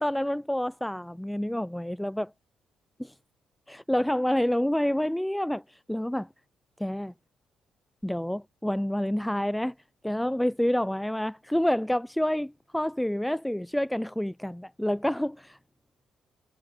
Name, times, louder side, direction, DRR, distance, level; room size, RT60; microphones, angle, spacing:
voice 1, 0.0-2.3 3.0-3.1 3.7-6.3 6.8-7.1 8.0-9.7 10.0-15.6, left 1 dB, 5° left, 1.5 m, -28 dB
cardioid pair, 90°, 0 cm